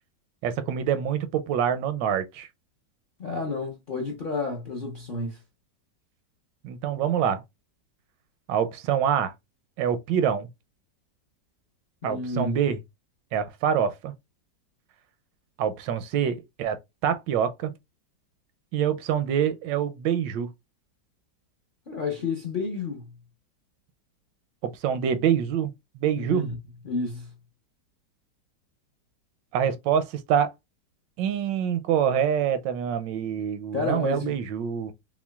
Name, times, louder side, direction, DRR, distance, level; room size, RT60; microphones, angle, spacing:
voice 1, 0.4-2.5 6.6-7.4 8.5-9.3 9.8-10.5 12.0-12.8 13.3-14.1 15.6-17.7 18.7-20.5 24.6-26.5 29.5-30.5 31.2-34.9, right 8 dB, 85° right, 1.2 m, -26 dB
voice 2, 3.2-5.4 12.0-12.6 21.9-23.1 26.2-26.6 26.8-27.3 33.7-34.3, left 3 dB, 50° left, 0.6 m, -30 dB
5.8 x 2.2 x 2.3 m
omnidirectional pair, 1.9 m